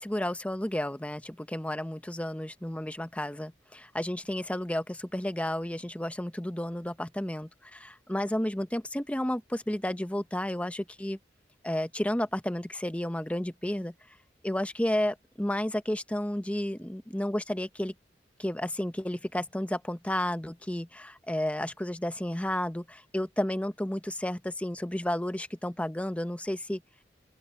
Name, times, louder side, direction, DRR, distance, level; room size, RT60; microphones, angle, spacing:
voice 1, 0.0-11.2 11.6-13.9 14.4-17.9 18.4-26.8, left 1 dB, 10° left, 0.8 m, -32 dB
open air
head